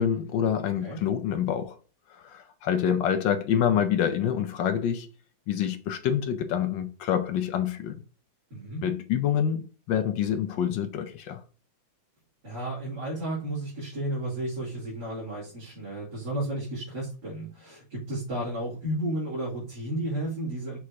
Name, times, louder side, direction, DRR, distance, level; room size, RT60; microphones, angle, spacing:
voice 1, 0.0-1.8 2.1-5.1 5.5-8.0 8.8-11.4, left 9 dB, 70° left, 1.2 m, -27 dB
voice 2, 8.5-8.9 12.4-20.8, right 1 dB, 50° right, 3.8 m, -33 dB
6.2 x 6.2 x 2.8 m
omnidirectional pair, 2.4 m